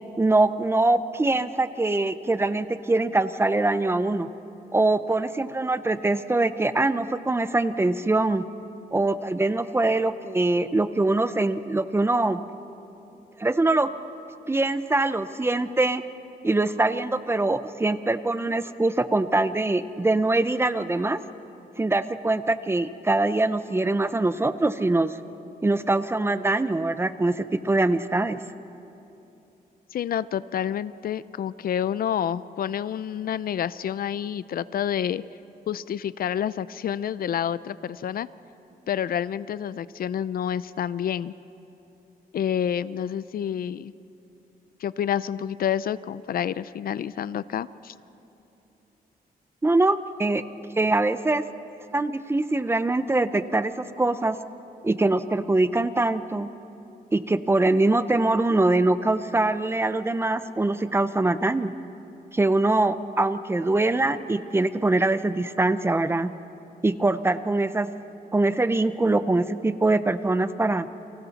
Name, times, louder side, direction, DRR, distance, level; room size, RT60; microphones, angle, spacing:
voice 1, 0.2-4.3 4.7-8.4 8.9-12.4 13.4-13.9 14.5-16.0 16.4-21.2 21.8-25.2 25.6-28.4 49.6-50.4 50.8-51.5 51.9-54.4 54.8-56.5 57.1-61.7 62.3-66.3 66.8-67.9 68.3-70.9, right 2 dB, 15° right, 12 dB, 0.5 m, -23 dB
voice 2, 29.9-35.2 35.7-38.3 38.9-41.3 42.3-43.9 44.8-47.9, left 9 dB, 70° left, 17 dB, 0.4 m, -28 dB
29.5 x 24.5 x 4.1 m, 2.9 s
wide cardioid pair, 175°, 16 cm